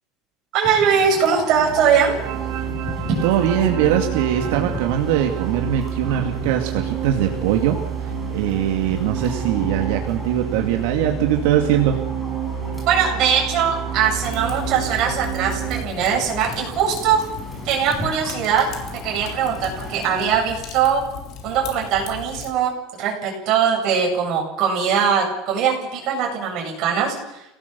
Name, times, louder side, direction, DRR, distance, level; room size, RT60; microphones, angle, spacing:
voice 1, 0.5-2.2 12.9-17.2 17.6-18.7 18.9-21.0 21.4-27.6, right 7 dB, 45° right, 1 dB, 7.8 m, -21 dB
sound 1, 0.6-20.2, left 1 dB, 5° left, 5.7 m, -36 dB
sound 2, 1.5-15.8, right 8 dB, 60° right, 2.9 m, -29 dB
voice 2, 3.2-7.8 8.0-12.0, right 10 dB, 80° right, 3 dB, 2.4 m, -21 dB
Fire, 14.1-22.5, left 7 dB, 45° left, 3.6 m, -37 dB
28.0 x 18.0 x 7.1 m, 0.86 s
cardioid pair, 170°, 0 cm